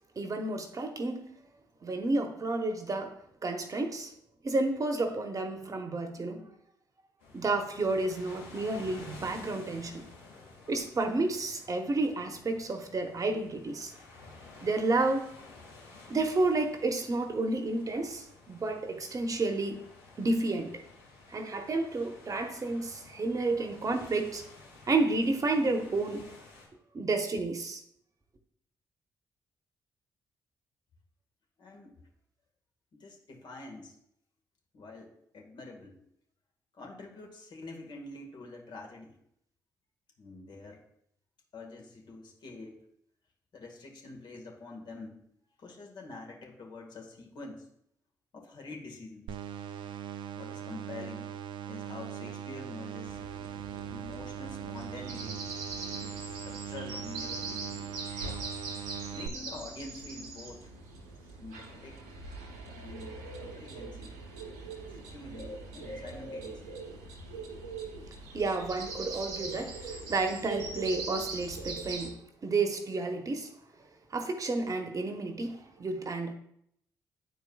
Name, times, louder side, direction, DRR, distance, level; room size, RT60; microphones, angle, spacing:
voice 1, 0.2-1.3 1.8-4.1 4.4-6.4 7.3-10.0 10.7-13.9 14.6-15.3 16.1-19.8 20.2-20.8 21.3-24.4 24.9-26.3 26.9-27.8 68.3-72.1 72.4-73.5 74.1-76.3, right 2 dB, 40° right, 1.0 m, -31 dB
sound 1, 7.2-26.7, left 3 dB, 80° left, 2.1 m, -52 dB
voice 2, 31.6-31.9 32.9-33.9 34.7-36.0 36.7-39.2 40.2-40.8 41.5-42.8 43.5-45.2 45.6-47.7 48.3-49.3 50.3-51.3 51.7-53.2 53.9-55.5 55.9-57.9 59.1-60.7 61.4-62.0 62.7-64.2 64.9-66.8, left 3 dB, 55° left, 1.7 m, -46 dB
sound 2, 49.3-59.3, right 9 dB, 65° right, 0.5 m, -40 dB
sound 3, 53.1-72.1, right 3 dB, 85° right, 0.9 m, -41 dB
9.5 x 4.6 x 2.3 m
hypercardioid pair, 45°, 9 cm